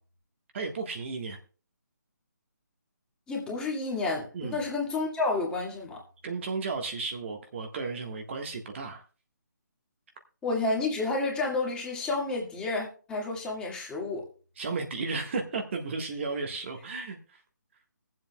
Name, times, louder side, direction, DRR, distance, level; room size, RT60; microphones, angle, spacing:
voice 1, 0.5-1.4 4.3-4.6 6.2-9.0 14.6-17.2, right 4 dB, 40° right, 1.5 m, -34 dB
voice 2, 3.3-6.0 10.4-14.3, left 3 dB, 10° left, 2.1 m, -30 dB
22.0 x 7.7 x 2.3 m
figure-of-eight pair, 150°, 10 cm